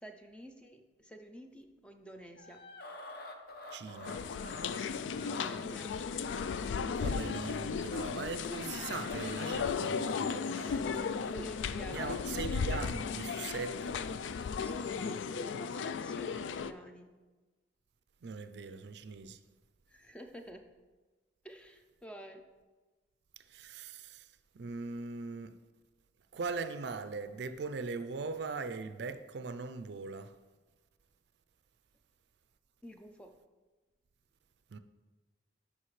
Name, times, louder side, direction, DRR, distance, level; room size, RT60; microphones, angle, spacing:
voice 1, 0.0-2.6 5.3-6.0 11.2-12.5 14.6-17.1 19.9-20.6 21.4-22.4 32.8-33.3, right 1 dB, 5° left, 0.4 m, -49 dB
sound 1, 2.4-4.8 5.1-5.6 8.2-10.7, left 2 dB, 55° left, 0.7 m, -47 dB
voice 2, 3.7-4.2 7.0-11.3 11.9-14.0 18.2-19.4 23.4-24.3 24.5-25.5 26.3-30.3 34.7-34.8, right 4 dB, 65° right, 0.4 m, -40 dB
sound 2, 4.0-16.7, left 5 dB, 80° left, 0.3 m, -35 dB
9.9 x 5.8 x 3.2 m
head